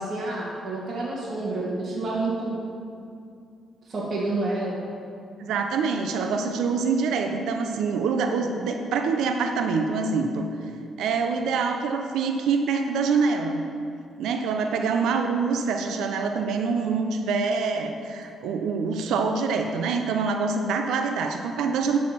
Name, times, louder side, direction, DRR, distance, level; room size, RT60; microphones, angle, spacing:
voice 1, 0.0-2.6 3.9-4.8, right 2 dB, 50° right, -7 dB, 1.7 m, -29 dB
voice 2, 5.4-10.5 11.0-13.7 14.2-22.0, right 5 dB, 80° right, 5 dB, 0.6 m, -25 dB
12.5 x 4.2 x 5.7 m, 2.5 s
cardioid pair, 90°, 0 cm